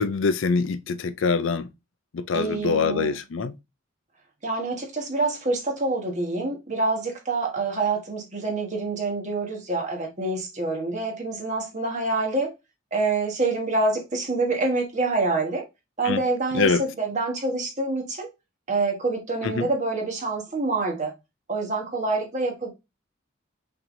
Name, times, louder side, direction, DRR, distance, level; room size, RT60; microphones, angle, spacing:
voice 1, 0.0-1.7 2.1-3.5 16.0-16.2 16.5-16.8 19.4-19.7, left 4 dB, 75° left, 0.5 m, -24 dB
voice 2, 2.3-3.2 4.4-12.5 12.9-15.6 16.0-18.3 18.7-21.1 21.5-22.7, right 3 dB, 35° right, 1.3 m, -26 dB
5.8 x 3.3 x 2.6 m
head